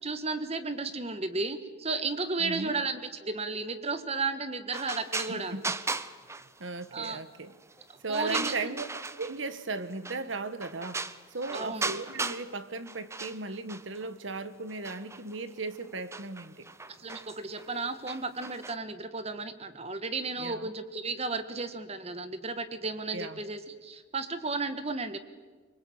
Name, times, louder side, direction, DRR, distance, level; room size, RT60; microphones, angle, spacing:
voice 1, 0.0-5.6 6.9-7.2 8.1-8.8 11.5-11.9 17.0-25.2, right 3 dB, 30° right, 10 dB, 1.5 m, -34 dB
voice 2, 2.4-2.8 5.3-5.6 6.3-7.5 8.0-8.8 9.2-11.0 11.3-16.6 20.4-20.7 23.1-23.4, right 3 dB, 70° right, 12 dB, 1.4 m, -36 dB
sound 1, 4.7-7.1 7.5-9.5 10.0-10.3 10.6-12.5 12.8-14.1 14.7-18.7, right 3 dB, 15° right, 0.7 m, -37 dB
24.5 x 21.5 x 8.8 m, 1.4 s
head